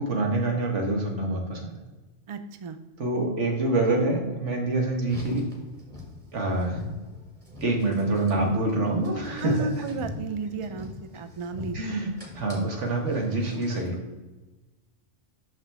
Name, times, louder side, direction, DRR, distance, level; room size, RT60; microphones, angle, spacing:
voice 1, 0.0-1.8 3.0-5.5 6.3-6.8 7.6-9.7 11.7-12.1 12.3-14.0, right 2 dB, 80° right, 1 dB, 1.7 m, -26 dB
voice 2, 2.3-2.8 9.4-12.0, right 4 dB, 50° right, 9 dB, 0.3 m, -33 dB
Car, 5.0-14.0, left 3 dB, 30° right, 1.8 m, -40 dB
6.3 x 5.7 x 3.4 m, 1.1 s
omnidirectional pair, 1.2 m